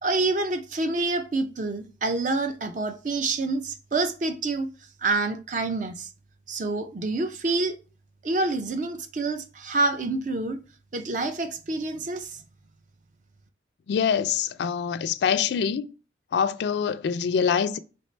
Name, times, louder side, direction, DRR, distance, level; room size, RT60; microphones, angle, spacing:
voice 1, 0.0-4.7 5.0-6.1 6.5-7.7 8.2-10.6 10.9-12.4, right 3 dB, 45° right, 0.5 m, -27 dB
voice 2, 13.9-15.9 16.3-17.8, left 7 dB, 70° left, 0.3 m, -25 dB
4.3 x 3.3 x 3.2 m
head